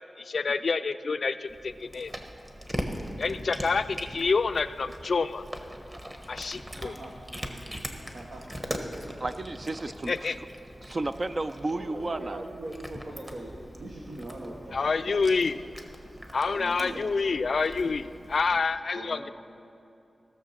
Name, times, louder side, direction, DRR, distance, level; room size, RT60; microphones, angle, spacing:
voice 1, 0.2-2.1 3.2-5.4 6.3-6.9 10.1-10.4 14.7-15.6 16.3-19.3, left 4 dB, 65° left, 12 dB, 0.4 m, -27 dB
Cat, 1.5-18.6, equal, 20° right, 1.2 m, -41 dB
voice 2, 6.8-7.1 8.1-8.5 11.7-13.5 13.8-15.3 16.5-17.1 18.9-19.3, right 1 dB, 80° right, -2 dB, 1.4 m, -41 dB
voice 3, 9.2-10.3 10.8-12.4, right 2 dB, 40° right, 9 dB, 0.4 m, -32 dB
17.5 x 6.8 x 5.8 m, 2.7 s
wide cardioid pair, 90°, 0 cm